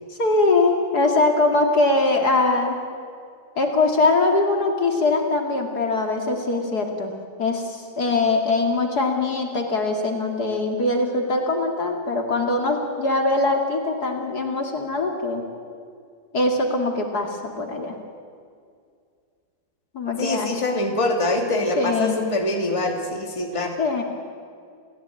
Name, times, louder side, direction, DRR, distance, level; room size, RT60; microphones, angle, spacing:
voice 1, 0.2-2.8 3.6-7.1 7.4-15.4 16.3-17.9 19.9-20.5 21.8-22.2 23.8-24.0, left 2 dB, 50° left, 3 dB, 2.9 m, -22 dB
voice 2, 20.2-23.8, left 2 dB, 15° left, 2 dB, 2.3 m, -24 dB
29.5 x 15.5 x 9.1 m, 2.3 s
omnidirectional pair, 2.1 m